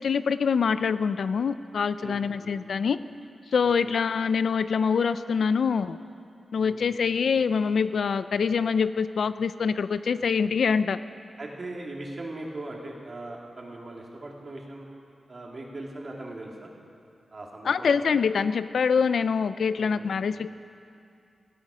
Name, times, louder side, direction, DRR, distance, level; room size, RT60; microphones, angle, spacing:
voice 1, 0.0-3.0 3.5-6.0 6.5-11.0 17.7-20.5, left 6 dB, 75° left, 13 dB, 0.4 m, -25 dB
voice 2, 2.0-2.6 3.6-3.9 6.6-7.0 11.4-14.9 15.3-16.7 17.3-18.2 19.7-20.4, right 2 dB, 40° right, -1 dB, 2.5 m, -40 dB
18.0 x 16.0 x 5.0 m, 2.5 s
wide cardioid pair, 125°, 0 cm